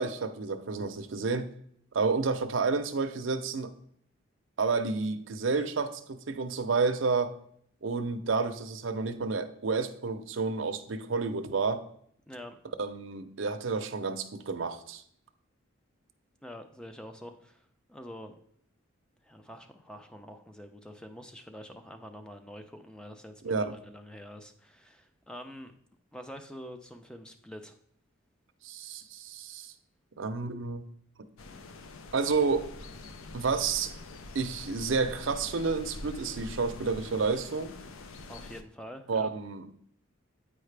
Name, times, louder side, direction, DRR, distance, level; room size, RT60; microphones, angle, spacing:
voice 1, 0.0-1.5 1.9-3.7 4.6-7.3 7.8-11.8 12.8-15.0 23.4-23.7 28.6-29.7 30.2-30.8 32.1-32.7 33.3-33.9 34.3-37.8 39.1-39.7, right 4 dB, 65° right, 8 dB, 0.6 m, -30 dB
voice 2, 12.3-12.6 16.4-18.3 19.2-25.7 26.1-27.8 38.3-39.3, equal, 5° left, 7 dB, 0.4 m, -46 dB
sound 1, 31.4-38.6, left 2 dB, 80° left, 0.5 m, -45 dB
8.7 x 4.8 x 3.3 m, 0.66 s
head